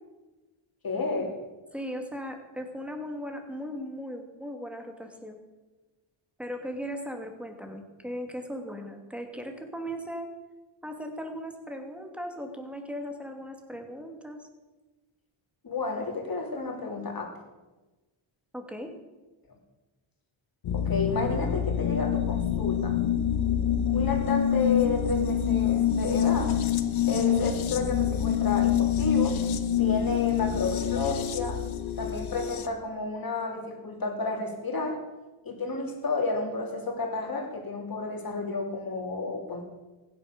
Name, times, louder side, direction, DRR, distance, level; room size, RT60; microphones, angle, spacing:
voice 1, 0.8-1.3 15.6-17.3 20.7-23.0 23.9-26.6 27.1-29.4 29.8-31.6 32.0-35.0 35.4-39.6, left 3 dB, 45° left, 2 dB, 3.4 m, -31 dB
voice 2, 1.7-5.4 6.4-10.3 10.8-14.4 18.5-18.9, equal, ahead, 5 dB, 2.5 m, -38 dB
sound 1, 20.6-32.7, left 9 dB, 70° left, 1.3 m, -26 dB
15.5 x 10.5 x 6.8 m, 1.2 s
cardioid pair, 90°, 50 cm